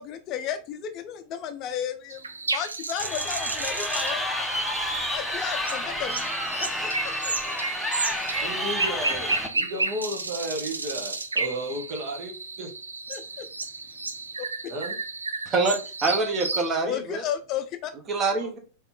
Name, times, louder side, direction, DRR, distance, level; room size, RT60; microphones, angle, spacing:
voice 1, 0.0-2.2 2.5-4.3 5.1-6.1 6.6-6.7 7.0-7.3 13.1-13.5 14.4-14.5 16.8-17.9, left 9 dB, 35° left, 8 dB, 0.5 m, -33 dB
sound 1, 2.1-16.7, right 3 dB, 80° right, 0.4 m, -32 dB
Crowd, 3.0-9.5, left 1 dB, ahead, 0.8 m, -30 dB
voice 2, 8.4-12.7 14.7-15.0 18.4-18.5, right 1 dB, 50° right, 2 dB, 1.4 m, -34 dB
voice 3, 15.5-17.2 18.1-18.6, right 3 dB, 30° right, 4 dB, 1.2 m, -25 dB
4.3 x 3.0 x 3.6 m, 0.35 s
figure-of-eight pair, 90°, 0 cm